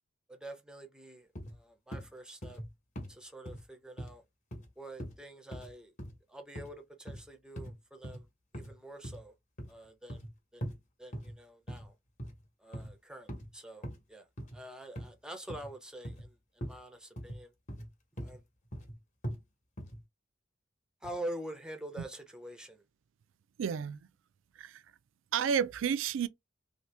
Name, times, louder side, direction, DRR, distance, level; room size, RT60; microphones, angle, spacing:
voice 1, 0.3-2.6 3.1-4.2 4.8-5.9 6.3-8.3 8.5-9.3 9.7-10.2 10.5-10.7 11.0-11.9 12.6-14.3 14.5-17.5 18.2-18.4 21.0-22.8, right 1 dB, 5° right, 0.6 m, -46 dB
sound 1, 1.3-1.5 1.9-2.1 2.4-2.7 3.0-3.1 3.4-3.6 4.0-4.1 4.5-4.7 5.0-5.2 5.5-5.7 6.0-6.1 6.5-6.7 7.1-7.2 7.6-7.7 8.0-8.2 8.5-8.7 9.0-9.2 9.6-10.3 10.6-10.7 11.1-11.3 11.7-11.9 12.2-12.4 12.7-12.9 13.3-13.5 13.8-14.0 14.4-14.6 15.0-15.1 15.5-15.7 16.0-16.3 16.6-16.8 17.2-17.4 17.7-17.9 18.2-18.4 18.7-18.9 19.2-19.4 19.8-20.0, equal, 35° left, 1.0 m, -41 dB
voice 2, 23.6-24.1 24.6-24.8 25.3-26.3, right 7 dB, 70° right, 0.4 m, -31 dB
2.8 x 2.8 x 3.3 m
head